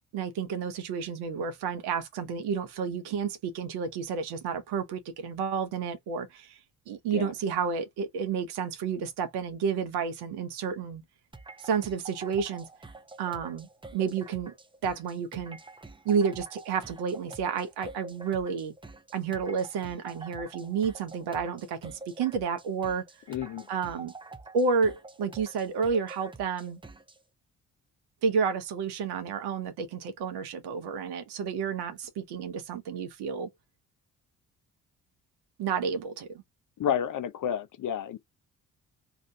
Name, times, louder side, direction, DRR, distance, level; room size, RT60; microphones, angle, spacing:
voice 1, 0.1-6.6 6.9-11.0 11.6-12.7 13.2-14.5 14.8-15.6 16.0-18.7 19.1-23.0 23.7-24.1 24.5-26.8 28.2-33.5 35.6-36.4, right 6 dB, 70° right, 1.0 m, -30 dB
sound 1, 11.3-27.2, right 3 dB, 10° right, 0.7 m, -47 dB
voice 2, 23.3-23.7 36.8-38.2, left 9 dB, 50° left, 0.7 m, -30 dB
2.9 x 2.5 x 3.4 m
hypercardioid pair, 45°, 40 cm